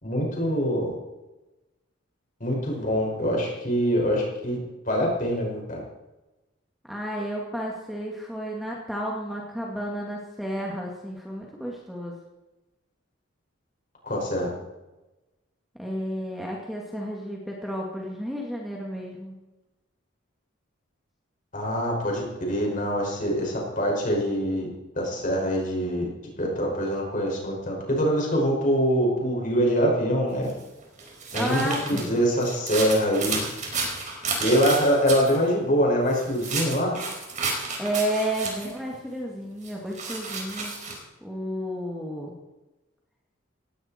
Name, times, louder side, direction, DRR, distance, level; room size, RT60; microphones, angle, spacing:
voice 1, 0.0-0.9 2.4-4.6 4.8-5.8 14.0-14.5 21.5-24.7 24.9-26.1 26.4-30.5 31.3-33.4 34.4-37.0, equal, 40° left, -1 dB, 5.9 m, -24 dB
voice 2, 6.9-12.2 15.8-19.3 31.3-32.2 37.8-40.7 41.2-42.3, right 1 dB, ahead, -2 dB, 2.1 m, -32 dB
sound 1, 30.5-35.4 36.1-38.8 39.6-41.0, right 4 dB, 35° right, 4.6 m, -31 dB
18.0 x 16.5 x 4.5 m, 1.1 s
head